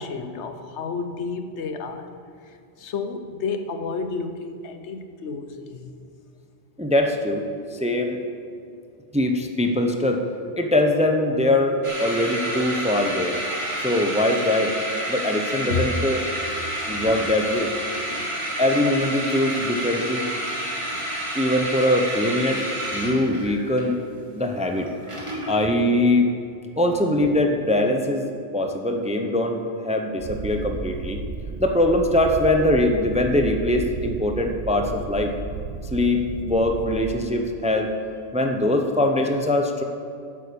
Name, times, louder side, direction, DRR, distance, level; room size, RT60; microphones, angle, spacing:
voice 1, 0.0-2.1 2.4-5.9 15.7-15.9 16.9-17.1 18.1-18.4, left 5 dB, 75° left, 7 dB, 1.1 m, -31 dB
voice 2, 6.8-7.4 7.7-8.2 9.1-10.2 10.6-13.4 13.8-14.7 15.1-16.2 16.9-17.7 18.6-20.2 21.3-22.6 22.9-24.0 24.4-24.9 25.5-26.3 26.8-28.3 28.5-31.2 31.6-35.3 35.9-37.9 38.3-39.8, left 1 dB, 5° right, 4 dB, 0.6 m, -22 dB
sound 1, 11.8-25.7, right 1 dB, 25° right, 2.0 m, -29 dB
Purr, 30.2-37.2, right 4 dB, 45° right, 0.7 m, -33 dB
9.8 x 8.4 x 6.9 m, 2.5 s
omnidirectional pair, 1.2 m